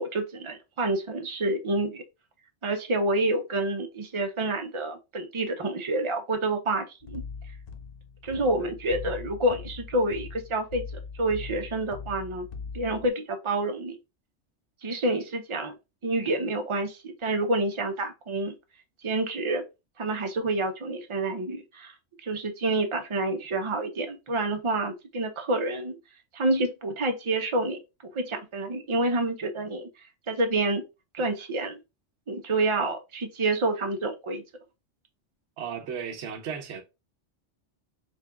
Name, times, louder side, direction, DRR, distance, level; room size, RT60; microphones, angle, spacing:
voice 1, 0.0-2.0 2.6-7.2 8.2-10.8 11.2-12.5 12.7-14.0 14.8-15.7 16.0-18.5 19.0-19.6 20.0-21.9 22.2-26.0 26.3-27.8 28.1-29.9 30.3-30.8 31.1-31.8 32.3-34.4, right 2 dB, 40° right, 0.5 m, -28 dB
sound 1, 7.0-13.1, left 5 dB, 75° left, 0.3 m, -41 dB
voice 2, 35.6-36.8, right 7 dB, 70° right, 0.9 m, -35 dB
3.5 x 2.3 x 3.4 m
omnidirectional pair, 1.3 m